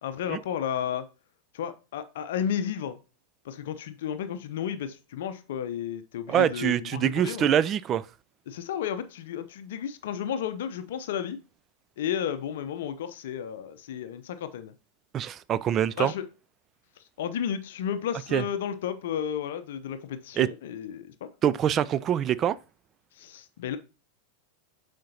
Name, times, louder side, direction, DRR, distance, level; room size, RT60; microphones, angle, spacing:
voice 1, 0.0-1.0 1.5-3.0 3.4-7.5 8.5-11.4 12.0-14.7 16.0-16.3 17.2-21.1 23.2-23.8, left 9 dB, 55° left, 0.6 m, -32 dB
voice 2, 6.3-8.1 15.1-16.1 18.3-18.4 20.4-20.5 21.4-22.6, right 10 dB, 30° right, 0.3 m, -24 dB
7.4 x 5.1 x 2.8 m
figure-of-eight pair, 90°, 0 cm